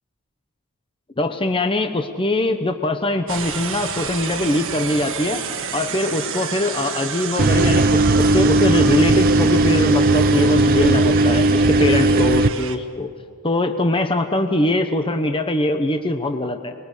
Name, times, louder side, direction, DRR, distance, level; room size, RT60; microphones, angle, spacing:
voice 1, 1.2-5.4 5.7-13.1 13.4-16.7, left 1 dB, 25° left, 6 dB, 1.0 m, -22 dB
sound 1, 3.3-12.8, right 7 dB, 60° right, 1.6 m, -30 dB
sound 2, 7.4-12.5, right 2 dB, 40° right, 0.7 m, -16 dB
25.5 x 22.0 x 6.7 m, 2.1 s
head